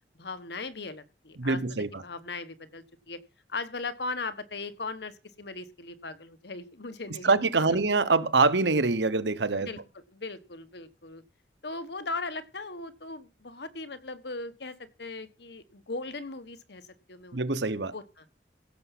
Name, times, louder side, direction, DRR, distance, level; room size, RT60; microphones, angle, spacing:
voice 1, 0.1-1.6 2.0-3.2 3.5-7.3 7.7-7.8 9.6-9.8 10.1-11.2 11.6-16.8 17.1-17.4 17.9-18.2, left 3 dB, 70° left, 1.4 m, -38 dB
voice 2, 1.4-2.0 7.2-9.7 17.3-17.9, right 3 dB, 80° right, 1.1 m, -25 dB
16.0 x 6.9 x 6.0 m
head